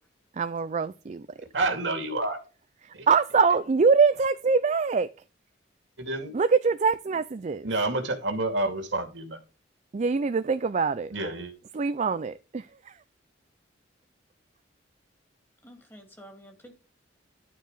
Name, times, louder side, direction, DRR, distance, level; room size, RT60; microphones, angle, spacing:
voice 1, 0.4-1.3 2.8-5.1 6.3-7.7 9.9-11.1 11.7-13.0, right 5 dB, 40° right, 0.4 m, -24 dB
voice 2, 1.5-2.4 2.9-3.1 6.0-6.3 7.6-9.4 11.1-11.5, right 2 dB, 70° right, 2.3 m, -29 dB
voice 3, 15.6-16.8, equal, 10° left, 2.4 m, -49 dB
12.0 x 4.7 x 5.0 m
head